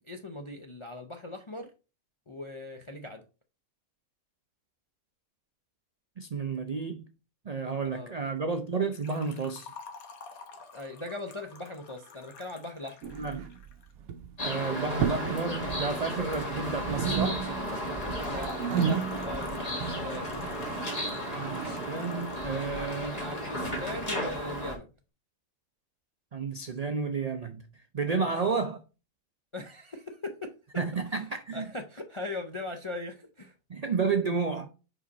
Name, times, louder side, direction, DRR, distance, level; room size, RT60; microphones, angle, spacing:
voice 1, 0.0-1.7 2.3-3.2 7.6-8.2 10.7-13.1 18.2-20.4 22.5-24.9 28.1-28.5 29.5-30.6 31.1-31.2 31.5-33.5, left 2 dB, 45° left, 0.4 m, -40 dB
voice 2, 6.2-7.0 7.4-9.7 13.1-13.5 14.4-17.4 21.3-23.2 26.3-27.7 27.9-28.8 30.8-31.7 33.7-34.7, right 4 dB, 60° right, 0.4 m, -31 dB
Liquid, 8.9-13.9 17.6-22.5 22.7-22.8 23.7-23.8, left 4 dB, 80° left, 1.5 m, -49 dB
sound 1, 13.0-13.7 14.0-14.4 14.9-15.5 15.7-16.6 16.8-17.8 18.1-21.8, right 7 dB, 85° right, 1.1 m, -32 dB
sound 2, 14.4-24.8, equal, 30° left, 1.6 m, -34 dB
5.1 x 4.9 x 4.0 m
omnidirectional pair, 1.5 m